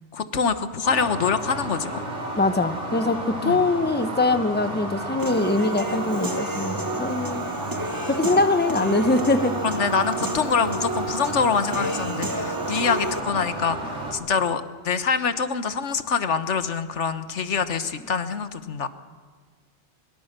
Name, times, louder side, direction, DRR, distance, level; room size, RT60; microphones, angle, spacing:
voice 1, 0.1-2.0 3.4-3.6 7.7-7.9 8.8-9.0 9.6-18.9, left 5 dB, 80° left, 11 dB, 1.5 m, -25 dB
sound 1, 0.8-14.1, right 1 dB, 80° right, 4.0 m, -32 dB
voice 2, 2.4-7.6 8.1-9.5, left 3 dB, 10° left, 10 dB, 1.0 m, -23 dB
Human voice / Piano, 5.2-13.2, right 2 dB, 20° right, 1.2 m, -31 dB
22.5 x 22.5 x 6.8 m, 1.5 s
omnidirectional pair, 1.2 m